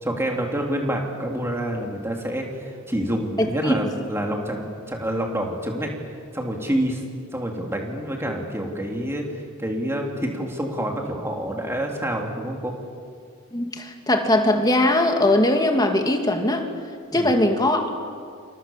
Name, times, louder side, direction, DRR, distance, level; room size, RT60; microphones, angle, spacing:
voice 1, 0.0-5.9 6.3-7.0 7.3-12.8 17.1-17.3, right 1 dB, 10° right, 1 dB, 3.3 m, -27 dB
voice 2, 3.4-3.7 13.5-16.7 17.1-17.9, left 1 dB, 20° left, 4 dB, 2.1 m, -20 dB
28.5 x 27.5 x 7.4 m, 2.2 s
head